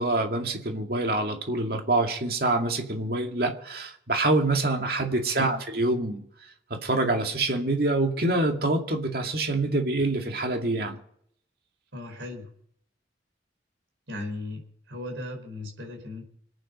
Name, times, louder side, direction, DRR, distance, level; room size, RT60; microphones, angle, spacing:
voice 1, 0.0-6.2 6.7-11.0, right 2 dB, 55° right, 3 dB, 2.2 m, -26 dB
voice 2, 5.3-5.6 11.9-12.5 14.1-14.6 14.9-16.3, left 2 dB, 90° right, 3 dB, 4.7 m, -37 dB
25.5 x 9.2 x 5.3 m, 0.67 s
head